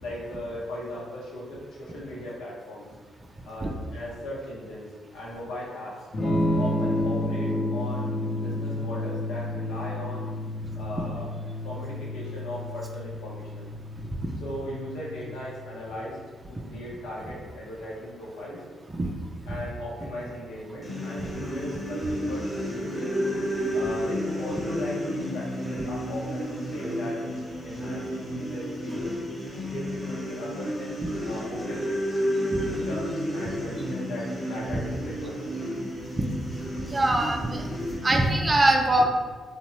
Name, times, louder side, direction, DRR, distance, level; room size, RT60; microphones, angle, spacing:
voice 1, 0.0-2.9 3.4-4.9 5.1-6.1 6.6-10.3 10.7-11.3 11.6-13.7 14.4-16.2 16.5-18.6 19.5-23.1 23.7-29.2 29.7-32.1 32.6-35.7, left 1 dB, 85° left, -5 dB, 0.7 m, -38 dB
Electric guitar / Strum, 6.1-15.9, left 1 dB, 45° left, 0.6 m, -31 dB
sound 1, 20.8-38.3, equal, 15° left, 0.9 m, -31 dB
voice 2, 36.9-37.7 38.0-39.0, right 1 dB, 30° right, 2 dB, 0.4 m, -23 dB
2.8 x 2.0 x 3.0 m, 1.4 s
supercardioid pair, 50°, 0 cm